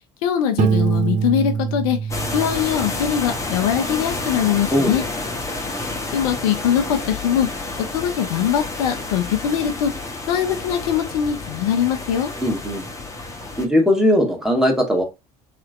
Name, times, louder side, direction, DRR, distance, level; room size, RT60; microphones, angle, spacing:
voice 1, 0.2-5.0 6.1-7.5 7.9-9.9 10.3-12.3, left 9 dB, 70° left, 0.5 m, -22 dB
Piano, 0.6-3.3, right 7 dB, 40° right, 0.4 m, -23 dB
sound 1, 2.1-13.7, left 2 dB, 15° left, 0.9 m, -30 dB
voice 2, 12.4-12.9 13.6-15.0, left 1 dB, 5° right, 1.2 m, -19 dB
3.2 x 2.9 x 2.4 m
hypercardioid pair, 65°, 19 cm